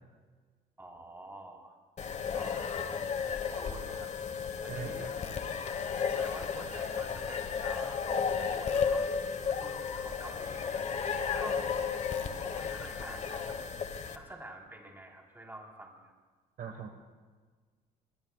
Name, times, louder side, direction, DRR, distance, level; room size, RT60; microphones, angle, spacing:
voice 1, 0.8-1.8 2.3-2.8 3.2-4.1 4.6-5.1 6.2-8.0 8.4-10.9 11.2-11.9 12.4-13.7 14.1-16.1, right 1 dB, 10° right, 0 dB, 3.9 m, -48 dB
sound 1, 2.0-14.2, left 6 dB, 40° left, 1.3 m, -33 dB
voice 2, 4.7-5.1 16.6-16.9, right 7 dB, 60° right, 4 dB, 1.5 m, -40 dB
23.0 x 22.5 x 2.4 m, 1.4 s
cardioid pair, 110°, 17 cm